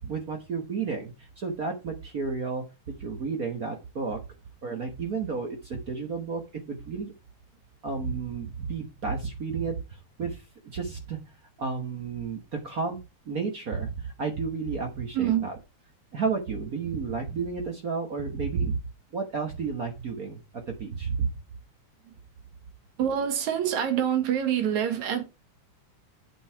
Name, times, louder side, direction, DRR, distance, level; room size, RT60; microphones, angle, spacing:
voice 1, 0.0-2.6 3.0-4.2 4.6-6.4 6.7-7.1 7.8-10.4 10.7-11.2 11.6-13.0 13.3-15.6 16.1-18.8 19.1-21.3, right 5 dB, 55° right, 1.0 m, -31 dB
voice 2, 15.1-15.5 23.0-25.3, right 9 dB, 75° right, 2.7 m, -26 dB
8.4 x 5.5 x 4.6 m
omnidirectional pair, 3.4 m